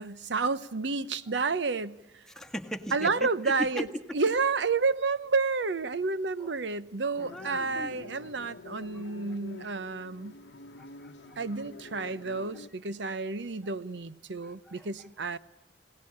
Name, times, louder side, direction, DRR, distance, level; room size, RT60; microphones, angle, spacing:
voice 1, 0.0-2.0 2.9-3.9 4.1-10.4 11.4-15.4, right 4 dB, 70° right, 0.8 m, -30 dB
voice 2, 2.3-3.9 6.4-6.5 7.3-7.9 8.4-8.5 8.9-9.0 10.8-11.4 14.4-15.1, equal, 5° left, 1.5 m, -39 dB
sound 1, 7.1-12.7, left 3 dB, 70° left, 0.9 m, -47 dB
21.5 x 18.5 x 8.6 m
head